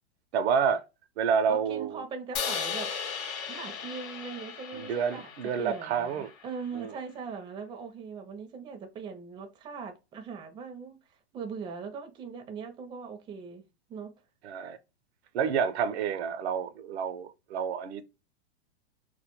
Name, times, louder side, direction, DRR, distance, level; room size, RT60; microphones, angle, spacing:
voice 1, 0.3-0.8 1.2-2.0 4.7-6.3 6.7-6.9 14.4-14.8 15.3-18.0, right 7 dB, 75° right, 0.5 m, -29 dB
voice 2, 1.5-2.9 3.5-5.3 5.6-13.6 13.9-14.1, right 5 dB, 15° right, 0.4 m, -40 dB
Crash cymbal, 2.4-6.5, left 6 dB, 45° left, 0.6 m, -37 dB
2.2 x 2.1 x 2.9 m
hypercardioid pair, 120°, 33 cm